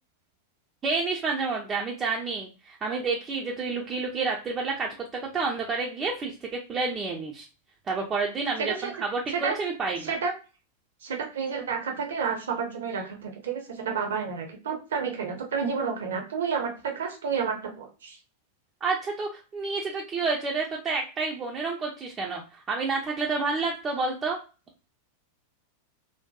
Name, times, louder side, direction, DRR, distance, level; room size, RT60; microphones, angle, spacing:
voice 1, 0.8-6.3 6.7-7.5 7.9-10.1 18.8-24.4, right 4 dB, 25° right, -1 dB, 0.4 m, -29 dB
voice 2, 8.6-8.9 9.3-9.6 10.0-10.3 11.0-18.2, right 6 dB, 60° right, 3 dB, 0.7 m, -30 dB
2.6 x 2.2 x 2.2 m, 0.32 s
figure-of-eight pair, 90°, 0 cm